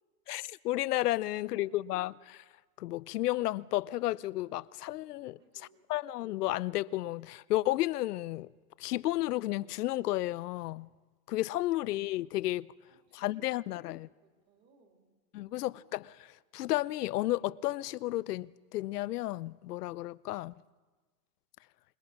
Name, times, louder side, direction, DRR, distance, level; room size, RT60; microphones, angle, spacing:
voice 1, 0.3-2.4 2.8-5.4 5.9-8.5 8.8-10.9 11.3-12.7 13.1-14.1 15.3-20.5, left 16 dB, 70° left, 0.7 m, -32 dB
voice 2, 1.2-1.8 5.2-5.9 12.9-13.9 14.2-15.8, right 3 dB, 25° right, 3.7 m, -67 dB
26.5 x 20.5 x 5.9 m
supercardioid pair, 165°, 49 cm